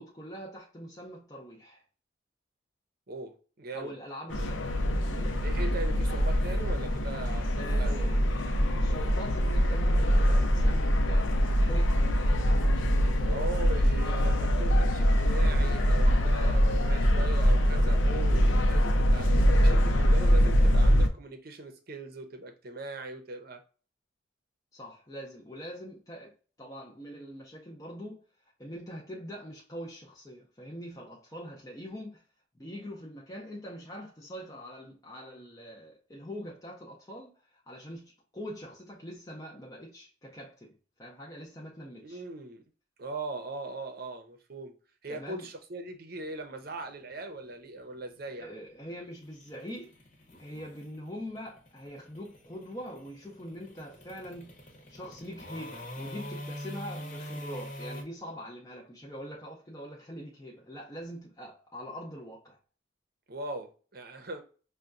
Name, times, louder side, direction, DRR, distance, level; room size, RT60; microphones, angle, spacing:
voice 1, 0.0-1.8 3.7-5.4 7.6-8.3 8.8-12.0 12.3-13.5 16.2-16.7 18.8-19.2 24.7-28.2 28.6-32.2 32.5-42.2 45.1-45.5 48.3-49.9 50.4-54.6 54.9-62.6, equal, 15° left, 0.5 m, -43 dB
voice 2, 3.1-3.9 4.3-4.5 5.4-8.1 13.3-19.3 19.6-23.6 42.0-42.6 43.0-44.7 45.0-48.5 63.3-64.4, right 2 dB, 50° right, 0.7 m, -40 dB
sound 1, 4.3-21.1, equal, 80° left, 0.6 m, -24 dB
sound 2, 46.1-58.0, left 1 dB, 40° left, 0.9 m, -44 dB
5.6 x 2.2 x 2.5 m
head